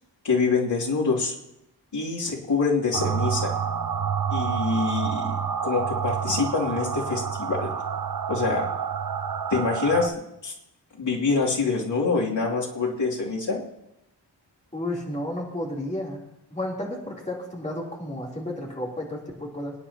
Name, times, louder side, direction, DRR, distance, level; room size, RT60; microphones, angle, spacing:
voice 1, 0.2-1.3 1.9-3.5 4.3-5.3 5.6-7.7 8.3-8.7 9.5-10.1 10.4-10.5 11.0-13.6, left 4 dB, 75° left, -4 dB, 2.9 m, -25 dB
sound 1, 2.9-10.1, right 7 dB, 55° right, 0.9 m, -28 dB
voice 2, 14.7-16.2 16.5-19.7, left 1 dB, 15° left, -3 dB, 3.4 m, -32 dB
26.0 x 10.0 x 2.9 m, 0.85 s
wide cardioid pair, 125°, 42 cm